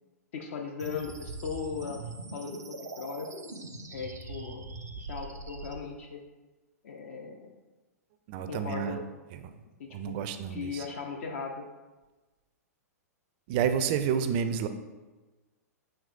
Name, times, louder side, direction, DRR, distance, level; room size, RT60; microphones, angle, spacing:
voice 1, 0.3-2.0 2.3-3.3 3.9-4.7 5.0-6.2 6.8-7.5 8.5-9.0 9.8-10.1 10.5-11.7, left 5 dB, 55° left, 3 dB, 0.5 m, -38 dB
sound 1, 0.8-5.8, right 3 dB, 90° right, 0.6 m, -42 dB
voice 2, 8.3-9.0 9.3-9.4 9.9-10.9 13.5-14.7, right 7 dB, 40° right, 9 dB, 0.4 m, -30 dB
6.5 x 3.0 x 2.4 m, 1.2 s
figure-of-eight pair, 105°, 9 cm